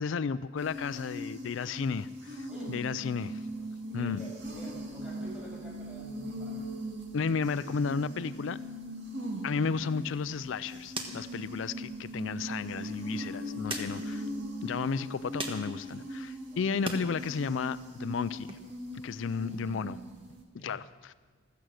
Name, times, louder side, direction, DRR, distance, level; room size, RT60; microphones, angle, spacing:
voice 1, 0.0-3.4 3.9-4.2 7.1-8.6 9.4-14.3 14.6-18.5 19.0-20.0 20.5-21.1, left 5 dB, 75° left, 15 dB, 0.4 m, -33 dB
sound 1, 0.6-20.4, equal, 60° right, 2.2 m, -40 dB
voice 2, 3.9-6.7 13.2-13.8 16.5-16.7 19.5-19.6 20.6-20.8, equal, 5° right, -5 dB, 6.6 m, -49 dB
sound 2, 9.9-17.1 17.4-18.5, right 2 dB, 25° right, 1.4 m, -44 dB
15.5 x 14.0 x 6.4 m, 1.4 s
head